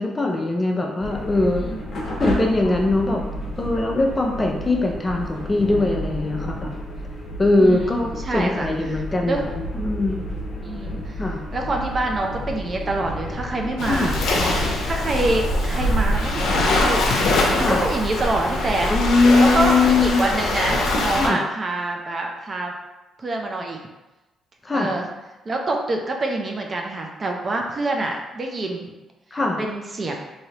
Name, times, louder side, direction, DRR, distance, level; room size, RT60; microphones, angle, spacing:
voice 1, 0.0-1.7 2.2-3.2 3.6-6.7 7.4-9.4 9.7-10.3 11.2-11.4 13.9-14.1 17.6-17.8 18.9-20.2 21.2-21.4 24.6-24.9 29.3-29.6, left 2 dB, 25° left, 1 dB, 0.5 m, -21 dB
sound 1, 1.0-17.7, left 1 dB, 55° left, 1.1 m, -31 dB
voice 2, 7.6-9.4 10.6-11.2 11.5-14.2 14.8-18.9 19.4-22.7 23.2-23.8 24.7-25.1 25.5-28.9 29.6-30.1, right 2 dB, 40° right, 2 dB, 0.5 m, -26 dB
Waves surf, 13.8-21.3, left 1 dB, 80° left, 0.6 m, -22 dB
3.1 x 2.8 x 2.8 m, 1.0 s
cardioid pair, 90°, 0 cm